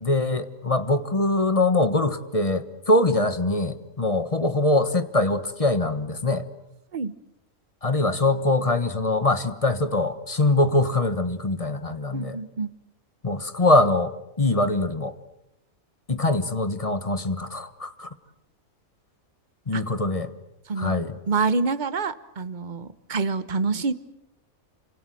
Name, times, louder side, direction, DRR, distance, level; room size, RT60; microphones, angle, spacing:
voice 1, 0.0-6.5 7.8-12.4 13.2-15.1 16.1-18.1 19.7-20.3 20.8-21.2, left 2 dB, 25° left, 11 dB, 1.3 m, -23 dB
voice 2, 12.1-12.7 19.7-19.8 20.7-20.9 21.3-23.9, right 4 dB, 35° right, 14 dB, 1.1 m, -26 dB
28.5 x 25.5 x 7.8 m, 0.89 s
omnidirectional pair, 1.5 m